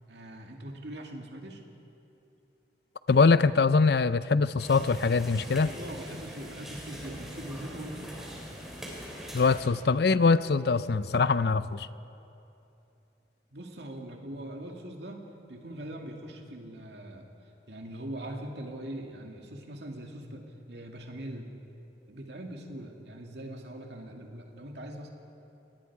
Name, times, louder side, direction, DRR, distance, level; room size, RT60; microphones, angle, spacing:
voice 1, 0.1-1.6 5.6-8.3 13.5-17.3 17.7-21.5 22.1-25.1, right 1 dB, 70° right, 2 dB, 2.3 m, -42 dB
voice 2, 3.1-5.7 9.3-11.9, left 4 dB, 60° left, 15 dB, 0.5 m, -23 dB
sound 1, 4.6-9.6, equal, ahead, 3.6 m, -42 dB
29.5 x 18.5 x 4.8 m, 2.8 s
head